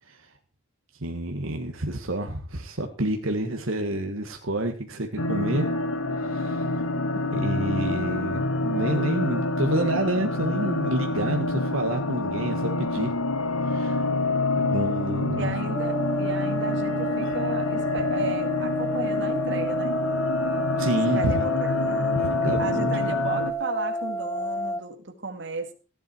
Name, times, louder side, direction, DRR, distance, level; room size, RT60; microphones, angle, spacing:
voice 1, 1.0-5.7 6.2-6.7 7.3-13.1 13.6-14.1 14.5-15.5 20.8-21.5 22.1-23.0, right 1 dB, 70° right, 4 dB, 1.7 m, -28 dB
sound 1, 5.2-23.5, left 2 dB, 85° left, 1.5 m, -27 dB
voice 2, 15.4-20.0 21.1-22.2 22.6-25.7, right 3 dB, 55° right, 5 dB, 2.1 m, -34 dB
sound 2, 15.7-24.8, left 1 dB, 10° left, 1.0 m, -29 dB
15.5 x 11.0 x 4.5 m, 0.34 s
head